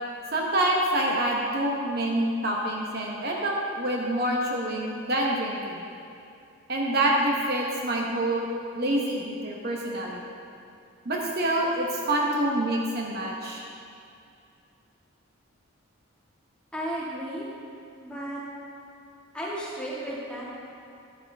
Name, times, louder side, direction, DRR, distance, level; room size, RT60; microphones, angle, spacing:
voice 1, 0.3-5.9 6.7-8.5 8.7-10.4 11.0-13.6, right 1 dB, 45° right, -2 dB, 1.0 m, -27 dB
voice 2, 16.7-17.5 18.0-18.4 19.3-20.5, right 1 dB, 5° left, -7 dB, 1.9 m, -34 dB
11.5 x 10.5 x 3.5 m, 2.5 s
head